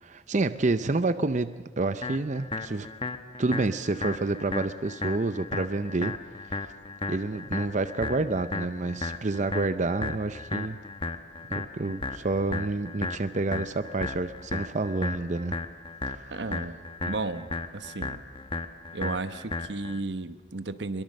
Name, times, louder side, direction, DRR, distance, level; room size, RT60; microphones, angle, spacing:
voice 1, 0.0-2.9 3.4-6.2 6.4-6.7 7.1-10.8 11.5-15.6 16.1-16.3, right 2 dB, 45° right, 11 dB, 0.7 m, -29 dB
sound 1, 2.0-20.0, left 3 dB, 30° left, 1.0 m, -35 dB
voice 2, 16.3-16.8 17.1-18.2 18.9-21.0, right 3 dB, 80° right, 11 dB, 1.1 m, -34 dB
23.0 x 22.5 x 6.5 m, 1.4 s
head